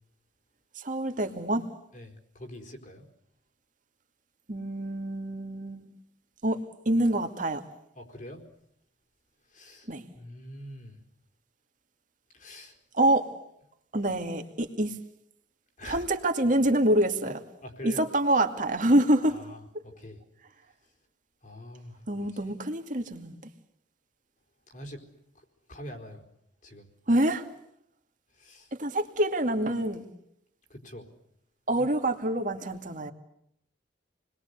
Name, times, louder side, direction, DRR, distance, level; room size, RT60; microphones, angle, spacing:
voice 1, 0.8-1.6 4.5-5.8 6.4-6.6 6.9-7.6 9.9-10.0 12.9-13.3 13.9-14.9 15.8-17.4 17.8-19.4 22.1-23.4 27.1-27.5 28.8-30.0 31.7-33.1, right 1 dB, 45° right, 2.5 m, -26 dB
voice 2, 1.9-3.1 8.0-8.4 9.5-9.9 10.1-11.0 12.3-12.8 15.8-16.0 17.6-18.0 19.3-20.2 21.4-22.3 24.7-25.0 25.7-26.2 26.6-26.9 28.4-28.7 30.7-31.1, left 1 dB, 45° left, 4.5 m, -44 dB
29.0 x 21.5 x 8.4 m
head